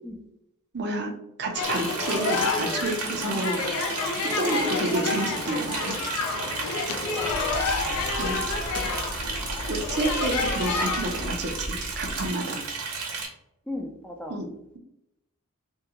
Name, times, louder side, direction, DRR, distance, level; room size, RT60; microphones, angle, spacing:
voice 1, 0.7-1.1 1.4-3.6 4.2-6.0 8.2-8.4 9.2-9.4 9.7-12.6 14.3-14.8, right 2 dB, 50° right, 3 dB, 0.6 m, -30 dB
sound 1, 1.5-11.3, left 4 dB, 75° left, 0.5 m, -29 dB
Liquid, 1.6-13.3, right 4 dB, 90° right, 1.0 m, -33 dB
voice 2, 4.5-5.0 7.0-7.8 13.7-14.4, left 1 dB, 5° left, 2 dB, 0.5 m, -37 dB
sound 2, 7.3-12.3, equal, 40° left, 0.8 m, -37 dB
3.6 x 2.3 x 2.9 m, 0.81 s
head